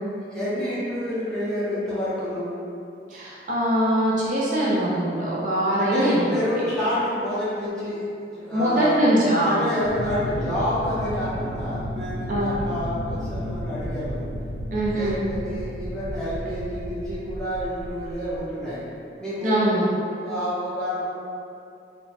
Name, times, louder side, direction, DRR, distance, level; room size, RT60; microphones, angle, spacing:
voice 1, 0.3-2.5 5.8-8.0 8.3-9.0 9.4-14.3 14.9-18.8 19.2-19.7 20.2-21.0, equal, 5° left, -12 dB, 0.6 m, -28 dB
voice 2, 3.1-6.2 6.5-6.6 8.5-9.6 12.3-12.5 14.7-15.2 19.4-19.8, right 1 dB, 45° right, -7 dB, 0.4 m, -22 dB
sound 1, 9.8-18.4, equal, 75° left, 0.5 m, -32 dB
2.9 x 2.1 x 2.7 m, 2.6 s
head